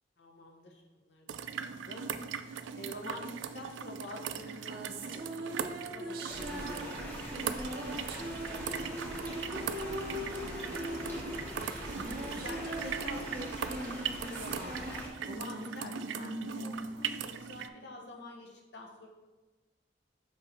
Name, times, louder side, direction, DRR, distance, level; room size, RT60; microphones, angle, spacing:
voice 1, 0.2-2.1 2.7-5.2 5.9-10.0 10.4-11.7 12.3-14.8 15.2-19.1, left 1 dB, 65° left, 1 dB, 1.0 m, -48 dB
sound 1, 1.3-17.7, right 7 dB, 90° right, 0.4 m, -40 dB
sound 2, 4.4-18.1, right 1 dB, 55° right, 0.8 m, -41 dB
sound 3, 6.3-15.1, equal, 10° left, 1.3 m, -43 dB
5.7 x 5.1 x 4.4 m, 1.2 s
head